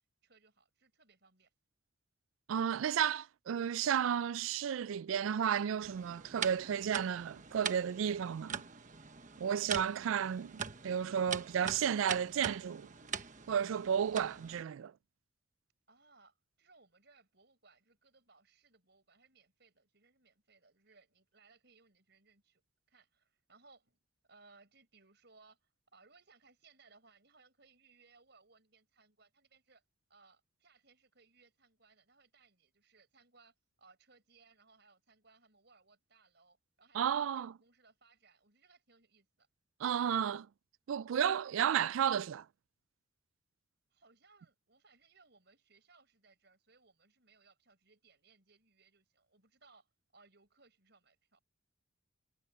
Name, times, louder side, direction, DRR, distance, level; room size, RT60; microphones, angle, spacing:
voice 1, 0.2-1.5 15.9-22.6 22.9-24.0 24.3-29.8 30.1-39.5 43.9-51.4, right 4 dB, 55° right, 6.1 m, -66 dB
voice 2, 2.5-8.6 9.4-10.5 10.8-12.9 13.5-14.9 36.9-37.5 39.8-40.5 40.9-42.5, right 8 dB, 80° right, 0.3 m, -32 dB
sound 1, 5.8-14.6, right 7 dB, 40° right, 1.2 m, -43 dB
head